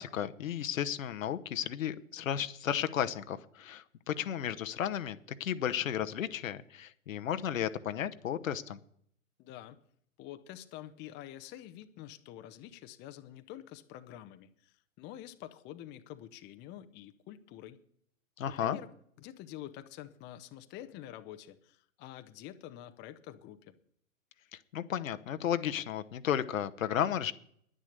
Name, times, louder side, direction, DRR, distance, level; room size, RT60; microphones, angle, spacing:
voice 1, 0.0-8.8 18.4-18.8 24.7-27.3, left 9 dB, 75° left, 10 dB, 1.0 m, -33 dB
voice 2, 9.4-9.8 10.2-17.8 18.4-23.8, left 12 dB, 25° left, 9 dB, 0.8 m, -47 dB
10.5 x 10.0 x 6.6 m, 0.67 s
hypercardioid pair, 120°, 40 cm